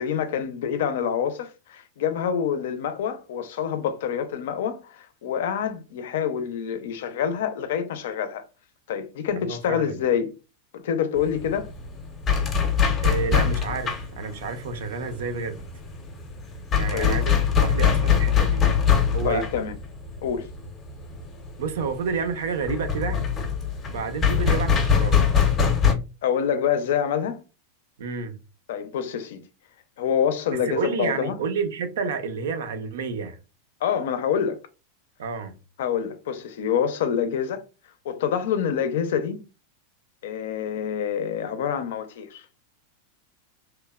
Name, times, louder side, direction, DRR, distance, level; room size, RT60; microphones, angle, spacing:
voice 1, 0.0-8.5 8.9-10.3 10.7-11.7 16.9-17.2 19.2-19.8 20.2-20.5 26.2-27.4 28.7-29.4 30.0-31.4 33.8-34.6 35.8-37.6 38.0-39.4 40.2-42.5, left 8 dB, 75° left, 0.4 m, -26 dB
voice 2, 9.5-10.0 13.0-15.6 16.8-17.3 17.6-18.7 19.1-19.5 21.6-23.2 23.9-25.2 28.0-28.3 30.7-33.4 35.2-35.5, right 5 dB, 85° right, 0.5 m, -30 dB
sound 1, 11.2-25.9, left 7 dB, 25° left, 0.6 m, -23 dB
3.0 x 2.1 x 2.2 m
supercardioid pair, 150°, 0 cm